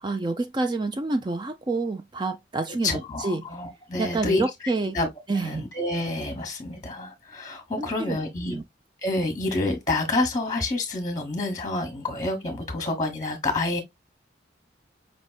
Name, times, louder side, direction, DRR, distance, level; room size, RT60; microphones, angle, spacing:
voice 1, 0.0-3.5 4.0-5.0 5.3-5.7 7.8-8.2 8.5-8.6, right 3 dB, 25° right, 0.4 m, -28 dB
voice 2, 2.8-4.4 4.9-5.1 5.4-8.6 9.0-13.8, left 2 dB, 20° left, 1.1 m, -28 dB
5.1 x 3.4 x 2.3 m
head